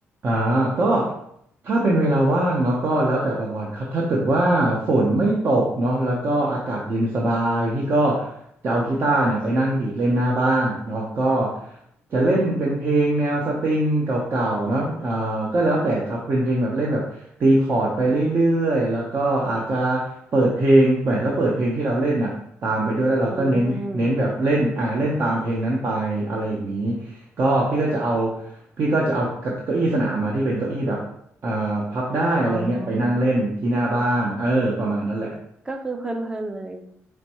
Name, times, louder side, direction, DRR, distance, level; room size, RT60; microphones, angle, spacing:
voice 1, 0.2-1.1 1.6-8.3 8.6-11.7 12.1-17.0 17.4-22.3 22.6-27.0 27.4-28.5 28.8-31.1 31.4-35.4, right 1 dB, 50° right, -3 dB, 0.8 m, -22 dB
voice 2, 23.3-24.1 32.5-33.3 35.6-36.9, right 2 dB, 20° right, 6 dB, 0.6 m, -32 dB
4.9 x 3.1 x 2.9 m, 0.72 s
cardioid pair, 90°, 5 cm